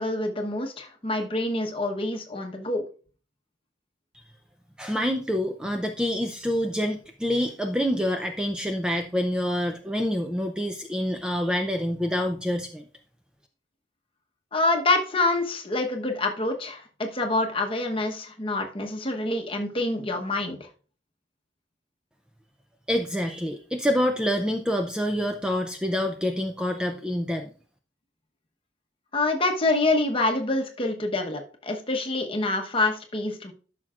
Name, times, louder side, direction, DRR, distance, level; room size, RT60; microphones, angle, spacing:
voice 1, 0.0-2.8 14.5-20.6 29.1-33.5, left 2 dB, 30° left, 3 dB, 1.0 m, -26 dB
voice 2, 4.8-12.8 22.9-27.5, equal, 5° right, 4 dB, 0.5 m, -27 dB
13.0 x 5.9 x 2.4 m, 0.40 s
head